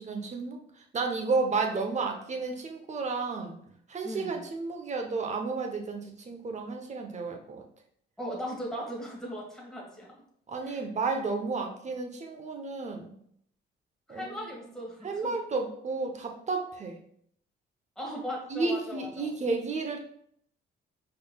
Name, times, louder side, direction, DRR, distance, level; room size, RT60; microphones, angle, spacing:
voice 1, 0.0-3.6 3.9-7.6 10.5-13.1 14.1-14.4 15.0-16.9 18.5-20.0, right 4 dB, 35° right, 3 dB, 0.9 m, -32 dB
voice 2, 4.0-4.4 8.2-10.1 10.6-10.8 14.1-15.4 18.0-19.3, equal, 5° left, -4 dB, 1.9 m, -38 dB
5.3 x 4.0 x 2.3 m, 0.67 s
cardioid pair, 90°, 20 cm